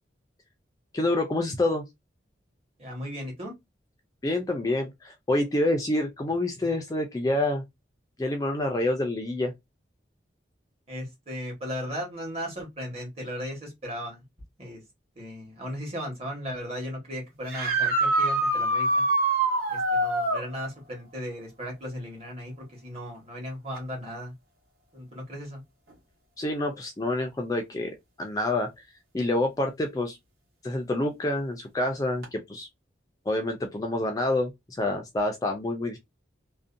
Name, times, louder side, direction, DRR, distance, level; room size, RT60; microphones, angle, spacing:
voice 1, 0.9-1.8 4.2-7.6 8.2-9.5 26.4-27.9 28.2-28.8 29.1-30.2 30.6-32.7 33.3-36.0, left 1 dB, 20° left, 0.3 m, -27 dB
voice 2, 2.8-3.5 10.9-14.2 14.6-14.8 15.2-19.0 19.7-24.3 24.9-25.6, equal, 35° right, 1.1 m, -36 dB
sound 1, 17.5-20.5 23.8-23.9 25.9-26.0 32.2-32.3, right 2 dB, 55° right, 1.1 m, -24 dB
2.6 x 2.1 x 2.5 m
head